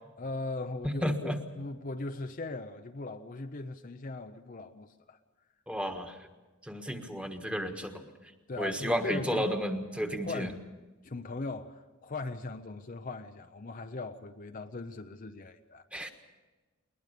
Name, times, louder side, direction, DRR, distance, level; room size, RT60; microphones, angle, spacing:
voice 1, 0.2-5.2 8.5-9.6 10.2-10.6 11.0-15.9, left 2 dB, 40° left, 0.6 m, -39 dB
voice 2, 1.0-1.4 5.7-6.2 6.6-8.1 8.6-10.5 15.9-16.1, equal, 5° right, 1.4 m, -32 dB
21.5 x 20.5 x 6.7 m
head